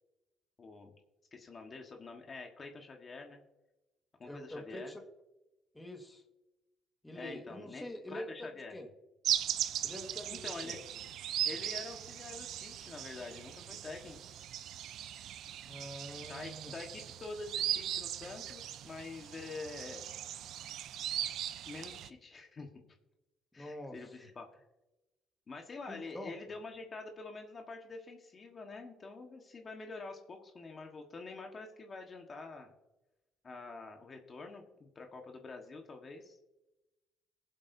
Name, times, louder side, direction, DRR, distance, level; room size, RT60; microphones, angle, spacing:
voice 1, 0.6-0.9 1.3-3.4 4.2-4.9 7.1-8.8 10.3-10.8 11.4-14.2 16.1-20.0 21.7-22.8 23.5-24.6 25.5-32.7 33.4-36.4, left 3 dB, 35° left, 2 dB, 1.5 m, -46 dB
voice 2, 4.2-5.0 5.7-6.2 7.0-8.9 9.8-10.8 15.6-16.7 23.6-24.3 25.9-26.3, left 1 dB, 10° left, 3 dB, 1.7 m, -45 dB
sound 1, 9.2-22.1, right 11 dB, 70° right, 0.5 m, -39 dB
21.5 x 7.9 x 2.8 m, 1.0 s
cardioid pair, 110°, 0 cm